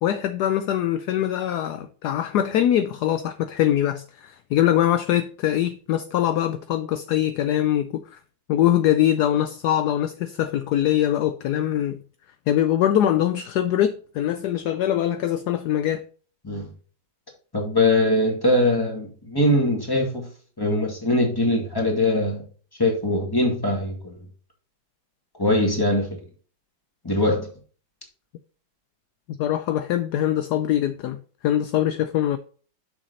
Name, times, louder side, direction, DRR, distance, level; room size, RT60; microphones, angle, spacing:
voice 1, 0.0-8.2 8.5-12.0 12.5-16.0 29.4-32.4, left 11 dB, 75° left, 0.9 m, -23 dB
voice 2, 17.5-20.3 20.6-22.4 22.8-24.2 25.4-26.2 27.0-27.5, left 1 dB, 10° left, 2.1 m, -22 dB
6.9 x 6.0 x 4.1 m
omnidirectional pair, 2.2 m